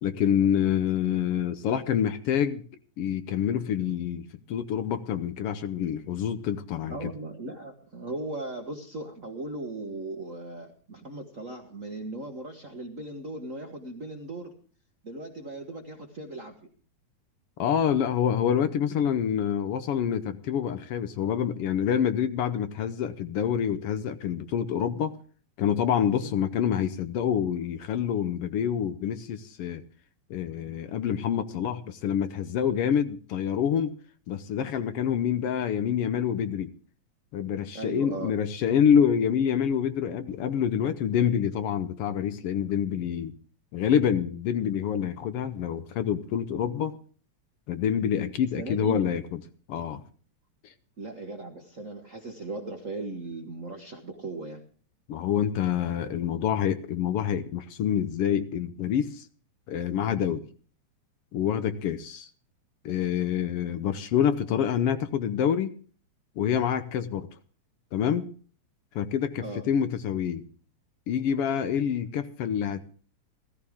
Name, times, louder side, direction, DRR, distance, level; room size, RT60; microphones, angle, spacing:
voice 1, 0.0-2.6 3.0-7.1 17.6-25.1 25.6-29.8 30.3-33.9 34.3-36.7 37.3-43.3 43.7-46.9 47.7-49.4 49.7-50.0 50.6-50.7 55.1-59.3 59.7-60.4 61.3-62.3 62.8-65.7 66.4-67.3 67.9-68.3 68.9-70.4 71.1-72.9, left 8 dB, 70° left, 11 dB, 1.4 m, -27 dB
voice 2, 6.9-14.5 15.0-16.6 26.1-26.3 37.7-38.3 48.6-49.0 51.0-54.6 69.4-69.7, right 2 dB, 55° right, 3 dB, 0.9 m, -37 dB
16.0 x 14.5 x 3.5 m, 0.42 s
omnidirectional pair, 3.4 m